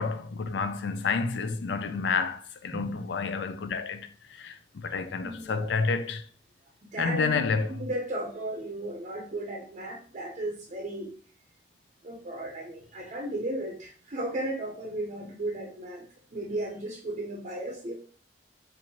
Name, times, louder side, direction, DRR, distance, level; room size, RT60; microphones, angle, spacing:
voice 1, 0.0-6.2 7.0-7.8, left 4 dB, 65° left, 0.4 m, -30 dB
voice 2, 5.2-5.7 6.8-7.4 7.7-11.1 12.0-17.9, right 1 dB, 40° right, 0.6 m, -35 dB
4.3 x 2.6 x 2.9 m
head